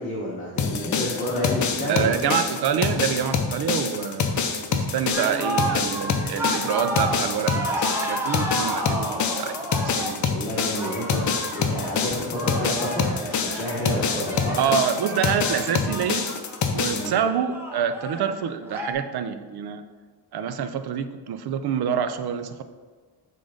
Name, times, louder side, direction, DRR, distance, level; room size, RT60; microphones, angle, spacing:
voice 1, 0.0-2.4 10.2-14.6 16.9-17.2, equal, 20° left, -7 dB, 1.0 m, -30 dB
sound 1, 0.6-17.1, left 5 dB, 40° left, 0.6 m, -26 dB
voice 2, 1.9-4.4 4.7-10.4 14.6-16.3 16.7-19.8 20.3-22.6, right 8 dB, 60° right, 10 dB, 0.5 m, -27 dB
sound 2, 5.1-18.9, right 1 dB, 5° right, 0.5 m, -32 dB
sound 3, 5.1-8.3, right 4 dB, 30° right, 1.4 m, -41 dB
5.8 x 3.8 x 5.0 m, 1.4 s
wide cardioid pair, 170°, 45 cm